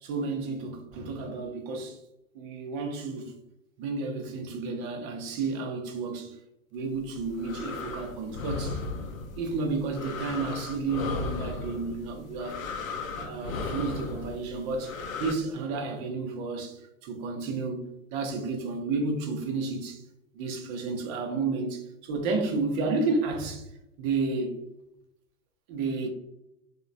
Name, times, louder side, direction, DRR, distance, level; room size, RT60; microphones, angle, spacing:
voice 1, 0.0-2.0 2.3-3.3 3.8-6.4 6.7-8.8 9.4-12.6 13.2-17.8 18.1-20.0 20.3-23.7 24.0-24.6 25.7-26.1, right 3 dB, 25° right, 0.4 m, -31 dB
sound 1, 7.0-15.3, left 4 dB, 85° left, 0.5 m, -36 dB
2.9 x 2.1 x 2.4 m
hypercardioid pair, 105°, 40 cm